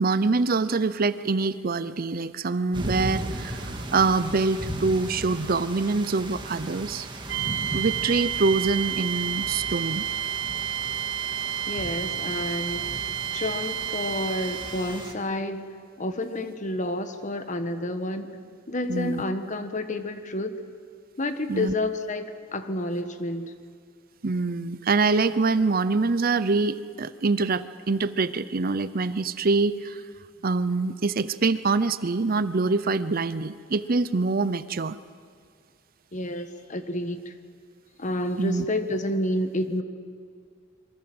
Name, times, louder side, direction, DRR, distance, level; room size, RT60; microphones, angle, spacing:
voice 1, 0.0-7.1 7.7-10.0 18.9-19.2 21.5-21.7 24.2-30.0 30.4-35.0 38.4-38.6, right 3 dB, 50° right, 15 dB, 0.7 m, -25 dB
sound 1, 2.7-15.1, right 1 dB, 25° right, 2.1 m, -37 dB
sound 2, 7.3-15.0, right 10 dB, 70° right, 1.4 m, -30 dB
voice 2, 11.7-12.9 13.3-15.6 16.0-18.3 18.7-20.5 21.2-23.5 36.1-37.3 38.0-39.8, left 1 dB, 40° left, 9 dB, 1.5 m, -29 dB
26.5 x 23.0 x 7.9 m, 2.2 s
head